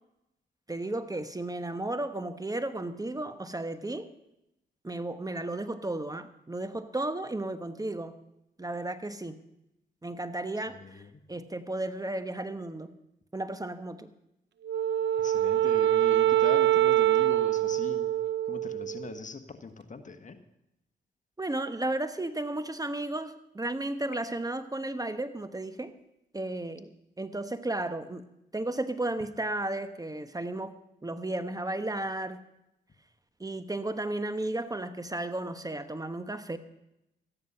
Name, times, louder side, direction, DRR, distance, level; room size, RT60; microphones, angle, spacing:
voice 1, 0.7-4.1 4.8-8.1 8.6-9.4 10.0-11.0 11.3-12.9 13.3-14.1 21.4-25.9 26.3-26.9 27.2-28.2 28.5-30.8 31.0-32.4 33.4-36.6, right 2 dB, 20° right, 10 dB, 1.1 m, -34 dB
voice 2, 10.7-11.1 15.2-18.1 18.5-20.4, left 4 dB, 45° left, 8 dB, 1.4 m, -40 dB
Wind instrument woodwind instrument, 14.7-19.1, right 13 dB, 70° right, 0.6 m, -24 dB
14.0 x 10.5 x 5.6 m, 0.85 s
supercardioid pair, 50°, 19 cm